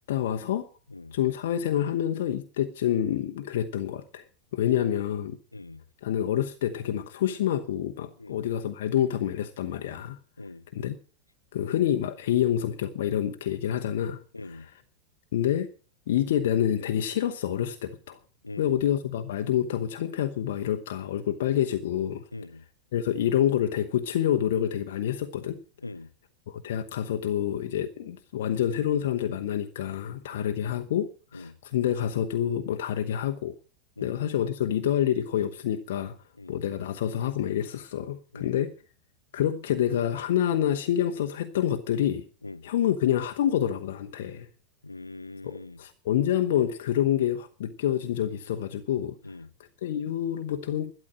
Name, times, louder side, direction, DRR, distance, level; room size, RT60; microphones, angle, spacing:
voice 1, 0.1-0.7 1.1-4.2 4.5-5.4 6.0-10.2 10.7-11.0 11.5-14.2 14.5-14.7 15.3-15.7 16.1-18.2 18.6-22.2 22.9-25.6 26.5-33.6 34.0-36.2 36.5-38.7 39.3-42.2 42.6-44.5 45.4-49.2 49.8-50.9, left 10 dB, 55° left, 1.0 m, -27 dB
voice 2, 5.5-5.8 8.2-8.4 10.4-10.7 14.3-14.7 18.4-18.8 22.3-22.6 25.8-26.1 30.3-30.5 31.3-31.6 34.0-34.2 36.4-36.6 38.3-38.6 42.4-42.7 44.8-45.8 49.2-49.5, left 2 dB, 80° left, 0.6 m, -42 dB
12.0 x 12.0 x 6.2 m
figure-of-eight pair, 90°, 0 cm